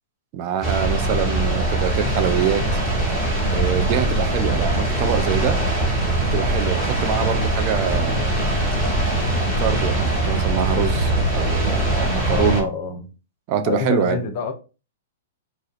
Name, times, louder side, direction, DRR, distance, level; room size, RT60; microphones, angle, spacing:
voice 1, 0.3-2.7 3.5-5.6 6.3-8.3 9.2-12.7 13.5-14.2, right 8 dB, 40° right, 0.3 m, -25 dB
sound 1, 0.6-12.6, right 1 dB, 20° right, 1.0 m, -22 dB
sound 2, 2.1-11.9, right 1 dB, 70° right, 1.0 m, -32 dB
voice 2, 12.3-13.1 13.6-14.5, left 5 dB, 45° left, 0.5 m, -26 dB
2.3 x 2.0 x 2.8 m
hypercardioid pair, 115°, 0 cm